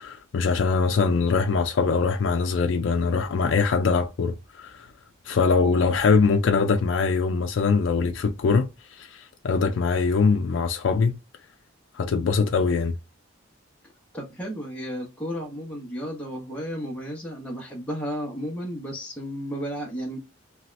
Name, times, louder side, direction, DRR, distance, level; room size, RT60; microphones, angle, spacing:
voice 1, 0.0-4.9 5.3-11.2 11.9-12.9, left 4 dB, 75° left, 0.4 m, -22 dB
voice 2, 14.1-20.2, equal, 5° left, 0.9 m, -33 dB
2.7 x 2.4 x 3.1 m
head